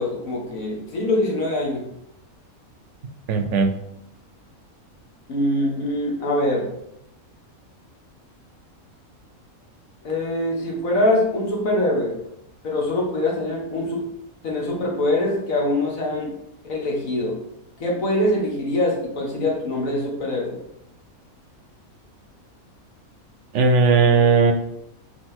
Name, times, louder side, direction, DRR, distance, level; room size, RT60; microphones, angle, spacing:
voice 1, 0.0-1.9 5.3-6.7 10.0-12.2 12.6-14.1 14.4-16.4 16.6-17.4 17.8-20.6, left 1 dB, 70° left, -1 dB, 1.9 m, -23 dB
voice 2, 3.3-3.7 23.5-24.5, right 4 dB, 60° right, 6 dB, 0.9 m, -17 dB
4.8 x 4.7 x 4.4 m, 0.77 s
omnidirectional pair, 1.5 m